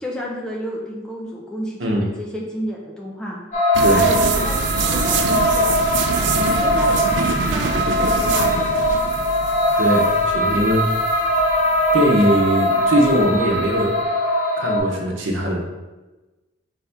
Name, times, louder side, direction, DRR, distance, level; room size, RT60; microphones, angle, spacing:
voice 1, 0.0-3.4 3.9-5.8 6.2-7.0 7.3-8.7, equal, 5° left, -3 dB, 0.7 m, -31 dB
voice 2, 1.8-2.1 3.8-4.1 9.8-10.9 11.9-13.9 14.6-15.6, equal, 85° right, -1 dB, 0.9 m, -20 dB
sound 1, 3.5-14.8, equal, 40° left, 0.8 m, -20 dB
sound 2, 3.7-13.9, right 4 dB, 65° right, 0.4 m, -25 dB
4.1 x 3.5 x 3.4 m, 1.1 s
head